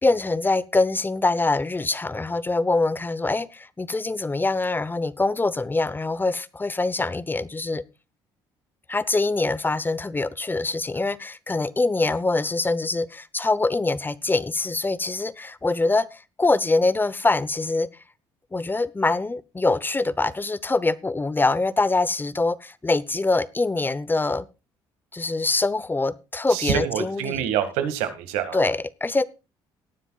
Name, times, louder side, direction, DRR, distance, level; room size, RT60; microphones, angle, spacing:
voice 1, 0.0-7.8 8.9-17.9 18.5-24.5 25.1-27.5 28.5-29.2, left 3 dB, 20° left, 0.8 m, -24 dB
voice 2, 26.5-28.6, right 9 dB, 85° right, 2.0 m, -26 dB
18.5 x 9.8 x 2.4 m
supercardioid pair, 70°, 11 cm